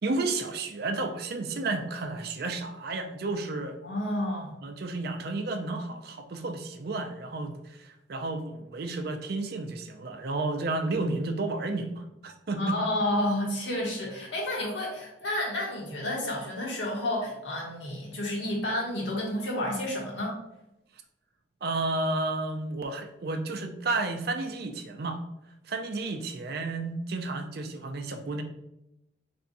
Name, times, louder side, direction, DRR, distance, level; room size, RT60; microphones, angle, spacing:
voice 1, 0.0-3.8 4.6-12.8 21.6-25.2 25.6-28.4, right 2 dB, 60° right, 6 dB, 0.5 m, -32 dB
voice 2, 3.8-4.5 12.6-20.3, left 1 dB, 90° left, -2 dB, 1.3 m, -30 dB
4.1 x 3.4 x 2.6 m, 0.86 s
head